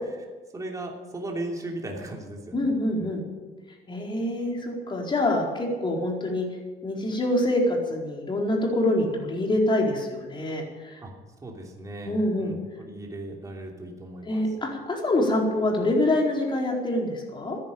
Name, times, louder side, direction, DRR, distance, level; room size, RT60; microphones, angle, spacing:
voice 1, 0.5-2.7 3.0-3.1 11.0-11.1 11.4-14.4, right 1 dB, 20° right, 0 dB, 3.0 m, -37 dB
voice 2, 2.5-3.2 3.9-6.5 6.8-11.0 12.0-12.6 14.2-17.6, left 1 dB, 30° left, 0 dB, 4.5 m, -25 dB
14.0 x 10.5 x 8.8 m, 1.3 s
cardioid pair, 110°, 17 cm